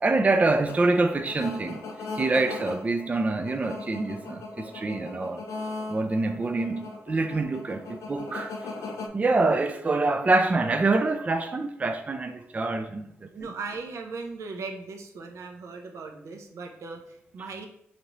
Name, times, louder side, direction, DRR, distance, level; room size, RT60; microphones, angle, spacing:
voice 1, 0.0-1.8 2.2-5.4 5.9-8.5 9.1-13.5, right 3 dB, 30° right, 0.4 m, -26 dB
sound 1, 0.7-9.1, left 3 dB, 80° left, 0.5 m, -38 dB
voice 2, 13.3-17.7, right 4 dB, 75° right, 0.6 m, -38 dB
5.1 x 2.7 x 2.9 m
cardioid pair, 60°, 5 cm